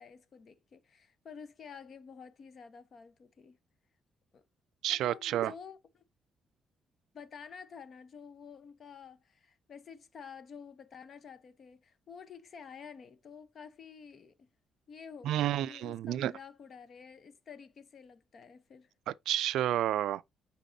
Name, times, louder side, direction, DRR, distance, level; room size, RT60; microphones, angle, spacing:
voice 1, 0.0-3.6 4.3-4.4 4.9-6.0 7.1-14.3 14.9-18.9, left 6 dB, 50° left, 0.8 m, -50 dB
voice 2, 4.8-5.5 15.2-16.3 19.1-20.2, right 12 dB, 80° right, 0.3 m, -30 dB
9.1 x 4.1 x 2.7 m
cardioid pair, 90°, 0 cm